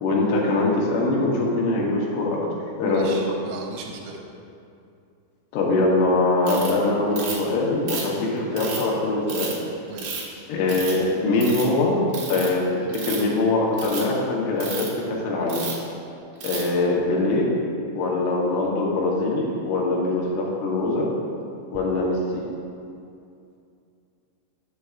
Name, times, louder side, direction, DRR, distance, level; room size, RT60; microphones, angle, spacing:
voice 1, 0.0-2.4 2.8-3.1 5.5-9.5 10.5-12.0 12.3-15.6 16.4-17.5 18.0-21.1 21.7-22.4, left 2 dB, 80° left, -3 dB, 3.3 m, -23 dB
voice 2, 2.8-4.2 9.9-10.3, right 3 dB, 80° right, 0 dB, 3.1 m, -36 dB
Ratchet pawl, 6.5-6.7 7.2-7.5 7.9-8.8 9.3-9.5 10.0-10.3 10.7-11.0 11.3-11.6 12.1-12.5 12.9-13.3 13.7-14.0 14.6-14.9 15.5-15.8 16.4-16.7, right 5 dB, 65° right, 2.4 m, -32 dB
8.1 x 7.4 x 2.4 m, 2.5 s
omnidirectional pair, 5.7 m